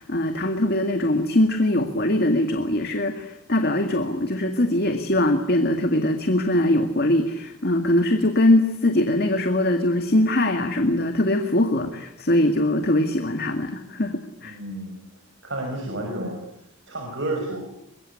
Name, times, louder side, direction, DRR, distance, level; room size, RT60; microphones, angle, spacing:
voice 1, 0.0-14.6, left 1 dB, 45° left, 6 dB, 2.0 m, -22 dB
voice 2, 14.4-15.0 15.4-16.4 16.9-17.6, right 1 dB, 55° right, 1 dB, 5.9 m, -30 dB
24.0 x 22.5 x 9.9 m, 0.80 s
head